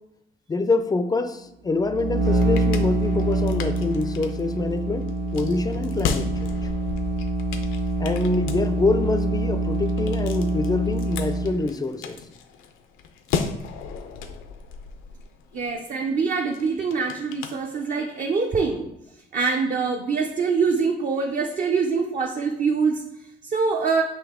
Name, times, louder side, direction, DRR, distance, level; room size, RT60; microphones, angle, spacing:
voice 1, 0.5-6.6 8.0-12.2, left 3 dB, 20° left, 0.3 m, -25 dB
sound 1, 1.7-11.6, right 2 dB, 55° right, 1.0 m, -25 dB
sound 2, 2.0-18.2, left 6 dB, 85° left, 0.5 m, -36 dB
voice 2, 15.5-18.9 19.3-24.0, right 5 dB, 40° right, 0.5 m, -24 dB
5.3 x 2.8 x 3.5 m
cardioid pair, 90°, 20 cm